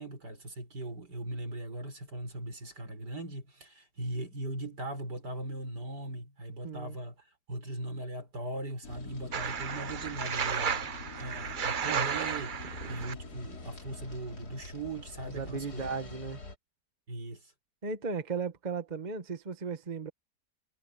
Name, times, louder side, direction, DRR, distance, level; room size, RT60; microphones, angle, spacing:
voice 1, 0.0-10.9 11.1-15.9 17.1-17.5, right 1 dB, 80° right, 5.7 m, -39 dB
voice 2, 6.6-7.0 15.3-16.4 17.8-20.1, right 5 dB, 30° right, 1.3 m, -36 dB
sound 1, 8.8-16.6, left 3 dB, 70° left, 3.4 m, -45 dB
sound 2, 9.3-13.1, right 7 dB, 50° right, 0.6 m, -33 dB
omnidirectional pair, 1.8 m